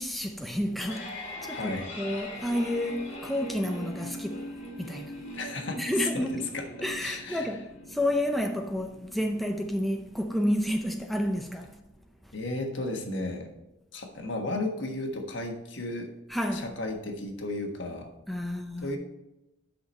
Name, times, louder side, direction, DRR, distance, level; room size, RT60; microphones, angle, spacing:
voice 1, 0.0-4.5 4.8-5.2 5.8-6.4 6.8-11.8 12.2-12.3 16.3-16.7 18.3-19.0, equal, ahead, 0.5 m, -30 dB
sound 1, 0.5-11.5, left 1 dB, 40° left, 2.1 m, -42 dB
voice 2, 1.5-1.8 5.3-5.9 6.1-6.6 7.0-7.5 12.3-13.5 13.9-16.1 16.5-18.1 18.8-19.0, left 2 dB, 70° left, 1.4 m, -34 dB
8.3 x 5.9 x 4.2 m
head